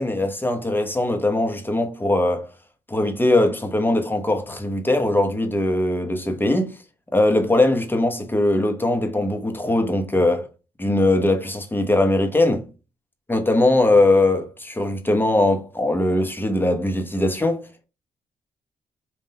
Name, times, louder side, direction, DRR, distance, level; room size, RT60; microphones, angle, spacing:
voice 1, 0.0-2.5 2.9-6.7 7.1-10.5 10.8-12.6 13.3-17.7, left 2 dB, 15° left, 1.1 m, -20 dB
3.7 x 2.6 x 4.2 m
supercardioid pair, 60°, 14 cm